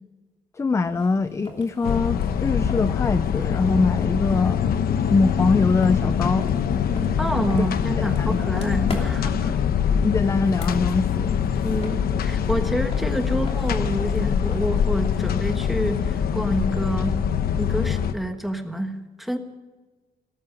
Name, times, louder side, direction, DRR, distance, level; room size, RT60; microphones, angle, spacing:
voice 1, 0.5-4.7 5.1-6.5 7.6-7.7 8.0-8.5 10.0-11.3, left 3 dB, 20° left, 13 dB, 0.4 m, -23 dB
sound 1, 0.8-16.8, left 2 dB, 40° left, 2.9 m, -44 dB
sound 2, 1.8-18.1, left 8 dB, 80° left, 1.0 m, -24 dB
voice 2, 7.2-9.6 11.6-17.2 17.6-19.4, equal, ahead, 6 dB, 1.3 m, -28 dB
18.0 x 13.5 x 5.1 m, 1.3 s
wide cardioid pair, 150°, 15 cm